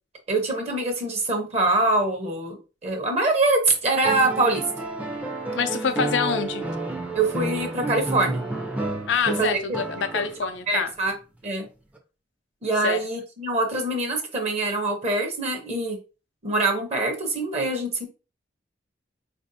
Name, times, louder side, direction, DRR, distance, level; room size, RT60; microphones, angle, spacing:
voice 1, 0.3-4.6 7.1-8.4 9.3-9.8 10.1-10.3 10.7-11.1 11.4-11.7 12.6-16.0 16.4-18.1, right 2 dB, 35° right, 0.8 m, -24 dB
sound 1, 4.0-10.5 12.0-12.1, right 2 dB, 10° right, 0.5 m, -30 dB
voice 2, 5.5-6.6 9.1-10.9 12.8-13.0, left 6 dB, 85° left, 0.5 m, -26 dB
4.2 x 2.5 x 2.7 m
head